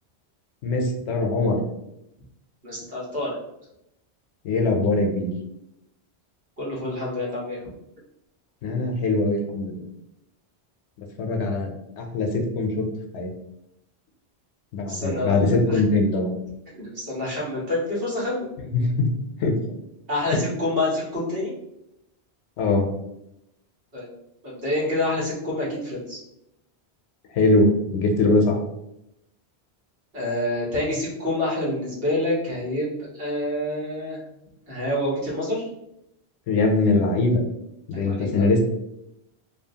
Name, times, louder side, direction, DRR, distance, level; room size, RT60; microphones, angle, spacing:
voice 1, 0.6-1.6 4.4-5.3 8.6-9.8 11.2-11.7 12.0-12.9 13.1-13.3 14.7-16.3 18.7-19.1 19.4-19.5 20.3-20.4 22.6-22.9 27.3-28.6 36.5-37.4 37.9-38.6, left 2 dB, 90° left, 2 dB, 0.9 m, -22 dB
voice 2, 2.6-3.4 6.6-7.6 14.9-15.8 16.7-18.5 20.1-21.5 23.9-24.1 24.4-26.2 30.1-34.2 34.7-35.7 37.9-38.5, left 1 dB, 60° right, -7 dB, 1.3 m, -27 dB
2.6 x 2.3 x 2.7 m, 0.84 s
omnidirectional pair, 1.1 m